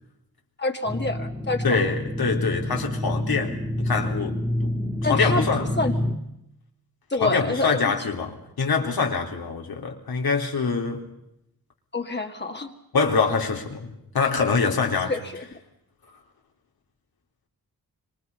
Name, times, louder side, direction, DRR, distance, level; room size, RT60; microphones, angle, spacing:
voice 1, 0.6-1.9 5.0-6.0 7.1-7.9 11.9-12.7 15.1-15.4, left 2 dB, 30° left, 2.1 m, -27 dB
sound 1, 0.8-6.1, left 1 dB, ahead, 2.3 m, -27 dB
voice 2, 1.6-4.4 5.1-5.7 7.2-11.0 12.9-15.1, left 5 dB, 75° left, 3.7 m, -24 dB
26.5 x 25.0 x 5.6 m
wide cardioid pair, 110°, 37 cm